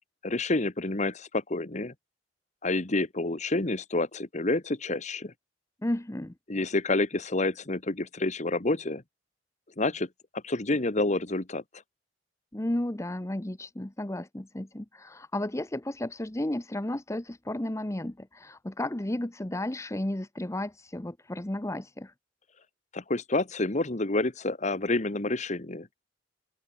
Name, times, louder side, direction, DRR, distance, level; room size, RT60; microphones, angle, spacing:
voice 1, 0.2-1.9 2.6-5.3 6.5-9.0 9.8-10.1 10.3-11.6 22.9-25.9, left 2 dB, 40° left, 1.4 m, -28 dB
voice 2, 5.8-6.3 12.5-22.1, left 1 dB, 15° left, 0.9 m, -33 dB
open air
head